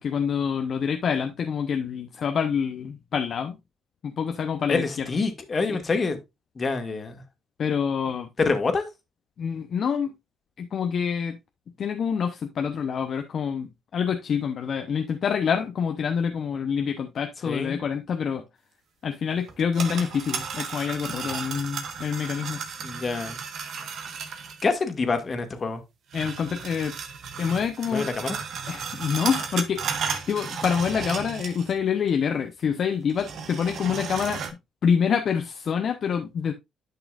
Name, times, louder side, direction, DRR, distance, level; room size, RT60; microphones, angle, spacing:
voice 1, 0.0-3.6 4.0-5.1 5.7-5.8 7.6-8.3 9.4-10.1 10.6-11.4 11.8-18.4 19.0-22.6 26.1-26.9 27.4-28.1 28.7-34.4 34.8-36.5, left 7 dB, 60° left, 0.8 m, -26 dB
voice 2, 4.7-6.2 6.6-7.2 8.4-8.9 17.5-17.8 22.8-23.4 24.6-25.8 27.9-28.4, left 4 dB, 40° left, 1.9 m, -26 dB
sound 1, 19.5-24.6 26.1-31.8 32.1-32.2 33.1-34.5, right 6 dB, 65° right, 1.3 m, -34 dB
10.5 x 6.0 x 2.5 m
supercardioid pair, 60°, 0 cm